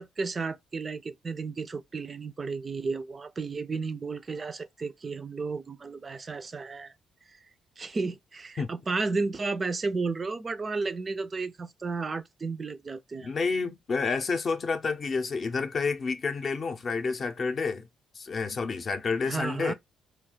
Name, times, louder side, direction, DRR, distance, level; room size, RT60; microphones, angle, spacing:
voice 1, 0.0-6.9 7.8-13.3 19.2-19.7, right 4 dB, 35° right, 0.3 m, -33 dB
voice 2, 13.2-17.9 18.1-19.7, left 4 dB, 45° left, 0.5 m, -29 dB
2.3 x 2.3 x 3.7 m
cardioid pair, 90°, 0 cm